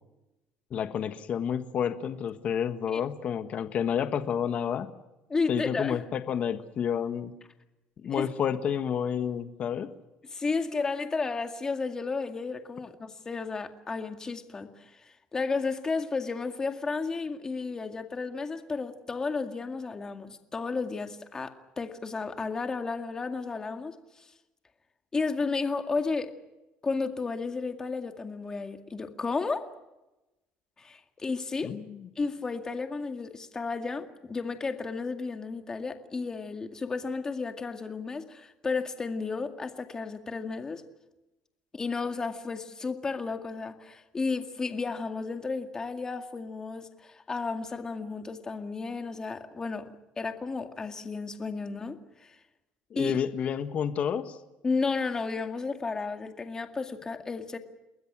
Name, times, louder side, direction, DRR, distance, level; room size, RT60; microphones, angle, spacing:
voice 1, 0.7-4.9 5.5-7.3 8.0-9.9 31.6-32.1 52.9-54.4, left 8 dB, 40° left, 1.4 m, -30 dB
voice 2, 5.3-6.0 8.0-8.3 10.3-24.3 25.1-26.3 26.8-29.7 30.8-31.7 32.2-40.8 41.7-49.9 50.2-52.4 53.0-53.1 54.6-57.6, left 4 dB, 20° left, 2.1 m, -33 dB
29.0 x 21.0 x 6.2 m
cardioid pair, 155°, 4 cm